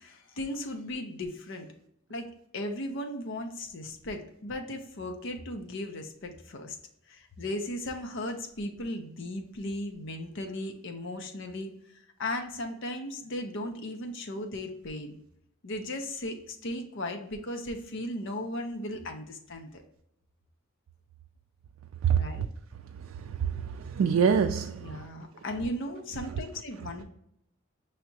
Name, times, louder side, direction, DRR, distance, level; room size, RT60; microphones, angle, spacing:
voice 1, 0.0-1.7 2.1-2.3 2.5-6.8 7.1-11.7 12.2-15.1 15.6-19.8 22.2-22.4 24.8-27.0, left 1 dB, 65° left, 0.7 m, -36 dB
voice 2, 22.9-25.1, right 7 dB, 75° right, 0.3 m, -26 dB
5.8 x 3.3 x 2.7 m
head